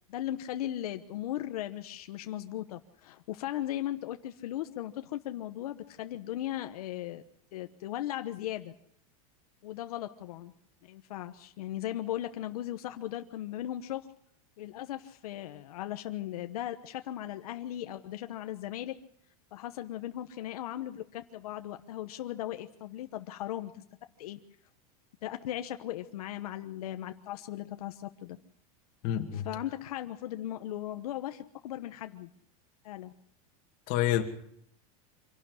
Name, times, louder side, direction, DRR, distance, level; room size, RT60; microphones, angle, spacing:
voice 1, 0.1-7.2 7.5-8.7 9.6-10.5 10.9-14.1 14.6-19.0 19.5-23.8 24.2-24.4 25.2-28.4 29.3-32.3 32.8-33.1, left 13 dB, 85° left, 1.1 m, -37 dB
voice 2, 29.0-29.5 33.9-34.2, left 12 dB, 45° left, 2.4 m, -28 dB
25.5 x 12.0 x 9.6 m
supercardioid pair, 160°, 19 cm